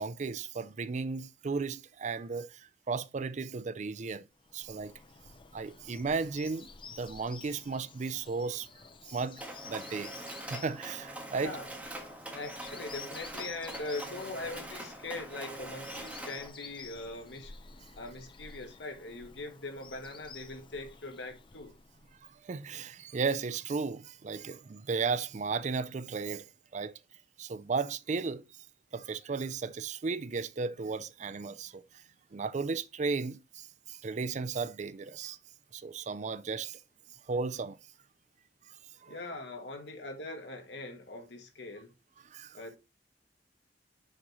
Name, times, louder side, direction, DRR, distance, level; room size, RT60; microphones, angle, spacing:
voice 1, 0.0-4.3 4.5-4.9 5.5-6.7 7.0-8.7 9.0-10.2 10.5-11.6 22.4-26.9 27.4-28.4 28.9-31.8 32.3-35.4 35.7-36.8 37.3-37.8 39.0-39.2 42.3-42.6, right 4 dB, 40° right, 0.4 m, -35 dB
Bird vocalization bird call bird song, 4.4-22.4, left 5 dB, 30° left, 0.6 m, -51 dB
Mechanisms, 9.4-16.5, right 1 dB, 10° right, 1.5 m, -43 dB
voice 2, 11.4-11.7 12.3-17.5 18.0-21.7 39.1-41.9 42.5-42.8, left 2 dB, 80° left, 1.7 m, -41 dB
6.5 x 6.2 x 3.1 m
head